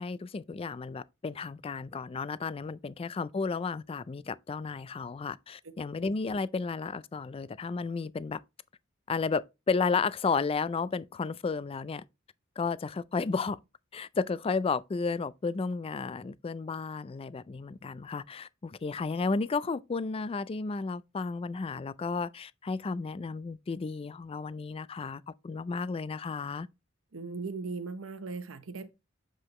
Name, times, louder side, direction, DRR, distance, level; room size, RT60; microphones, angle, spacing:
voice 1, 0.0-8.4 9.1-9.4 9.7-12.0 12.6-13.6 13.9-26.7, left 4 dB, 30° left, 0.3 m, -33 dB
voice 2, 27.1-28.9, right 4 dB, 75° right, 0.9 m, -38 dB
7.6 x 4.9 x 3.1 m
head